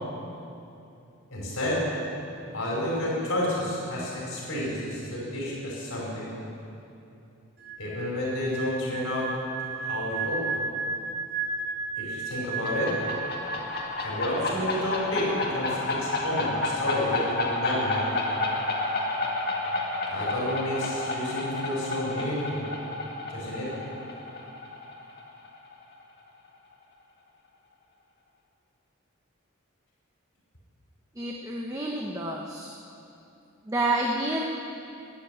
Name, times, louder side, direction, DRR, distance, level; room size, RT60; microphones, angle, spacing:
voice 1, 1.3-1.8 2.5-6.3 7.8-9.3 9.8-10.4 12.0-12.9 14.0-18.1 20.1-22.6 23.3-23.7, left 1 dB, 75° left, -6 dB, 4.7 m, -30 dB
sound 1, 7.6-14.0 14.2-14.5, right 4 dB, 55° right, 3.8 m, -34 dB
sound 2, 12.4-25.8, left 2 dB, 50° left, 2.0 m, -31 dB
voice 2, 31.2-32.7 33.7-34.4, right 2 dB, 15° right, -1 dB, 0.9 m, -29 dB
19.5 x 7.6 x 9.4 m, 2.7 s
head